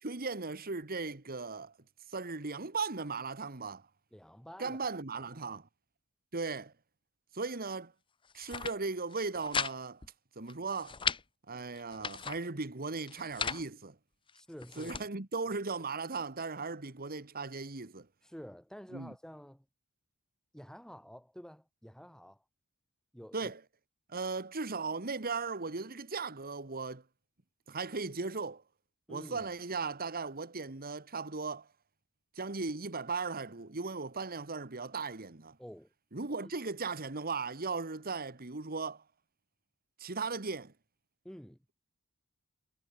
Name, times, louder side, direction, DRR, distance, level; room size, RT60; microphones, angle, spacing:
voice 1, 0.0-1.7 2.1-3.8 4.6-5.7 6.3-6.7 7.3-7.9 8.3-10.0 10.3-11.0 11.5-13.9 14.8-18.1 18.9-19.1 23.3-23.6 24.1-27.0 27.7-28.6 29.1-31.7 32.3-35.6 36.1-39.0 40.0-40.7, right 4 dB, 40° right, 1.6 m, -37 dB
voice 2, 4.1-4.8 5.1-5.6 14.3-14.9 18.2-19.6 20.5-22.4 23.1-23.5 29.1-29.5 35.6-35.9 36.4-36.5 41.2-41.6, equal, 5° left, 2.5 m, -50 dB
sound 1, 8.2-8.7 9.1-9.7 10.0-10.1 10.5-11.2 11.8-12.4 13.0-13.6 14.3-15.0, left 6 dB, 20° left, 0.7 m, -36 dB
head